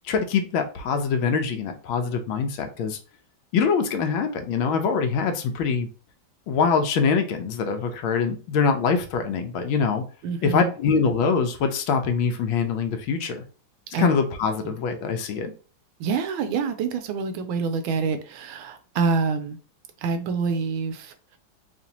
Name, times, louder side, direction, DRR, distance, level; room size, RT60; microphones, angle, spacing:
voice 1, 0.0-3.0 3.5-5.9 6.5-10.0 10.4-13.4 13.9-15.5, left 5 dB, 90° left, 1.5 m, -24 dB
voice 2, 10.2-10.7 13.9-14.1 14.6-14.7 16.0-19.6 20.0-21.4, right 5 dB, 85° right, 1.4 m, -26 dB
5.0 x 2.6 x 2.8 m
omnidirectional pair, 2.2 m